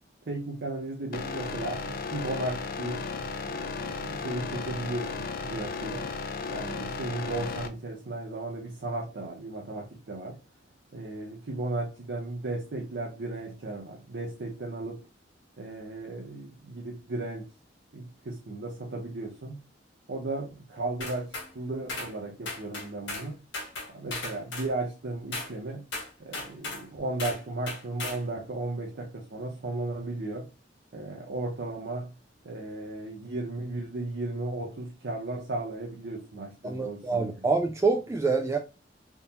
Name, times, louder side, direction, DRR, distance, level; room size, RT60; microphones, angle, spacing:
voice 1, 0.3-6.1 6.5-10.4 10.9-15.0 15.6-17.5 17.9-19.6 20.1-23.4 23.9-25.8 26.2-30.5 30.9-32.1 32.4-37.3, right 2 dB, 65° right, 0.7 m, -35 dB
sound 1, 1.1-7.7, left 4 dB, 50° left, 0.4 m, -35 dB
sound 2, 21.0-21.5 21.9-22.1 22.5-23.3 23.5-24.7 25.3-25.5 25.9-26.8 27.2-27.4 27.7-28.2, left 3 dB, 90° left, 1.5 m, -36 dB
voice 2, 36.6-38.6, right 4 dB, 15° right, 0.3 m, -26 dB
3.6 x 2.6 x 2.8 m
head